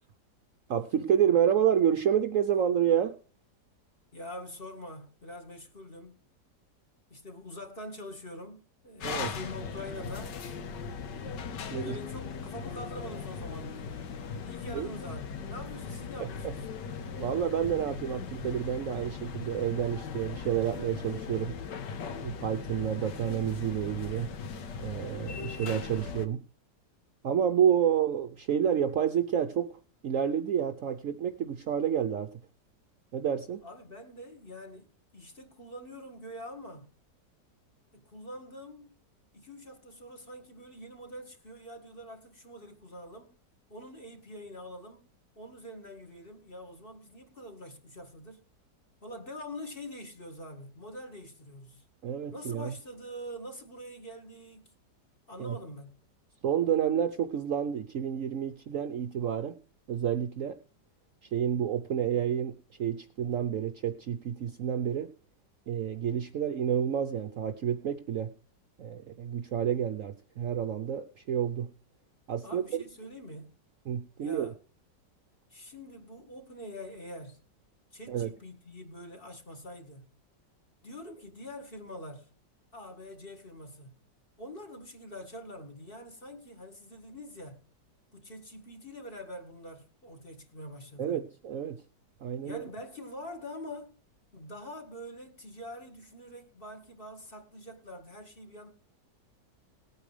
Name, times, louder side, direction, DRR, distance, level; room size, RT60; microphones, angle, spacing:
voice 1, 0.7-3.2 9.0-9.3 11.7-12.0 14.7-14.9 16.2-16.5 17.2-21.6 22.2-24.3 24.8-26.5 27.2-32.4 33.1-33.6 52.0-52.7 55.4-55.6 56.4-59.6 59.9-60.6 61.2-65.1 65.7-68.3 68.8-71.7 72.3-72.6 73.9-74.5 78.1-78.3 91.0-91.8 92.2-92.6, right 9 dB, 60° right, 0.9 m, -29 dB
voice 2, 4.1-6.2 7.1-10.4 11.7-13.9 14.4-16.7 33.6-36.9 37.9-39.0 39.3-43.3 43.7-45.1 45.4-48.4 49.0-51.9 52.3-54.7 55.3-56.0 72.4-73.5 74.2-74.6 75.5-77.4 77.9-80.1 80.8-82.3 82.7-83.9 84.4-87.6 88.1-91.2 92.4-94.0 94.3-98.7, left 1 dB, 30° left, 2.0 m, -45 dB
sound 1, 9.0-26.3, left 5 dB, 80° left, 1.7 m, -39 dB
19.0 x 8.8 x 3.2 m
omnidirectional pair, 1.9 m